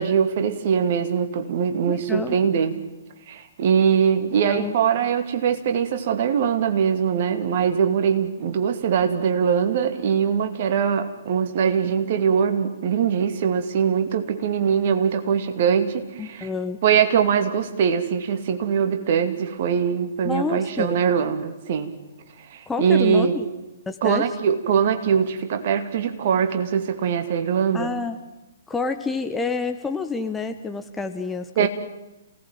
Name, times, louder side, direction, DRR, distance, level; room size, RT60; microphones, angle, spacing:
voice 1, 0.0-2.8 3.3-16.5 16.8-21.9 22.5-23.4 24.0-27.9 31.6-31.7, right 7 dB, 45° right, 7 dB, 2.3 m, -22 dB
voice 2, 1.9-2.4 4.5-4.7 16.2-16.8 20.2-21.0 22.7-23.5 23.9-24.2 27.7-28.2 28.7-31.7, left 4 dB, 10° left, 6 dB, 1.2 m, -28 dB
28.0 x 18.0 x 9.2 m, 1.0 s
figure-of-eight pair, 120°, 0 cm